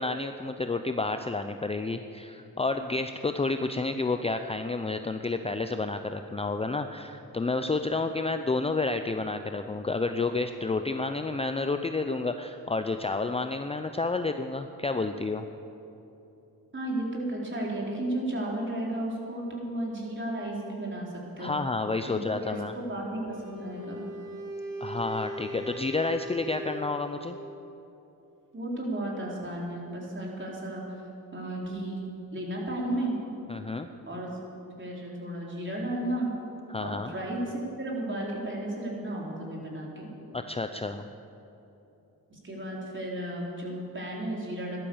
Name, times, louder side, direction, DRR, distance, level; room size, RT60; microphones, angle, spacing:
voice 1, 0.0-15.5 21.4-22.7 24.8-27.4 33.5-33.9 36.7-37.1 40.3-41.1, left 3 dB, 15° left, 8 dB, 0.6 m, -30 dB
voice 2, 16.7-21.6 22.1-24.0 28.5-30.8 31.3-32.0 32.3-33.2 34.1-34.3 34.8-36.3 36.8-40.1 42.3-44.8, right 1 dB, 30° right, -3 dB, 4.5 m, -33 dB
Wind instrument woodwind instrument, 23.2-27.5, equal, 60° right, 2.1 m, -39 dB
14.0 x 12.0 x 7.2 m, 3.0 s
cardioid pair, 75°, 37 cm